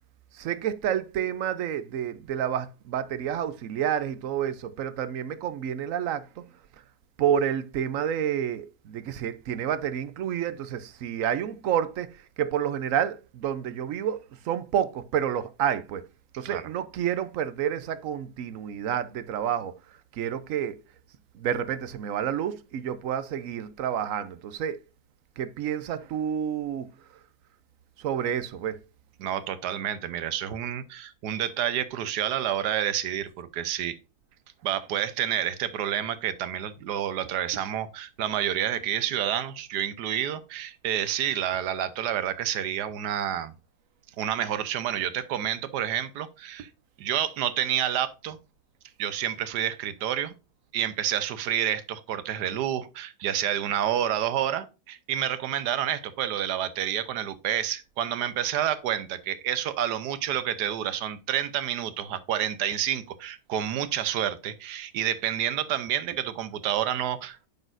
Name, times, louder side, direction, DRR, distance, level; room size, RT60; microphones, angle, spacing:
voice 1, 0.3-6.4 7.2-16.0 16.4-19.7 20.1-20.8 21.3-24.8 25.4-26.9 28.0-28.8, right 9 dB, 65° right, 0.9 m, -29 dB
voice 2, 29.2-34.0 34.6-43.5 44.2-46.7 47.0-48.4 49.0-50.3 50.7-67.5, right 10 dB, 85° right, 1.3 m, -29 dB
8.9 x 6.2 x 2.5 m
omnidirectional pair, 1.7 m